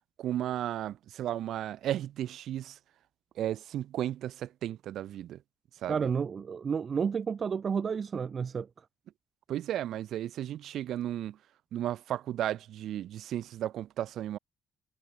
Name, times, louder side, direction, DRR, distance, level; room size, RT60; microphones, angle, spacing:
voice 1, 0.2-2.8 3.4-5.4 5.8-6.0 9.5-11.4 11.7-14.4, right 12 dB, 70° right, 2.3 m, -34 dB
voice 2, 5.9-8.8, right 6 dB, 40° right, 3.1 m, -31 dB
cardioid pair, 100°, 0 cm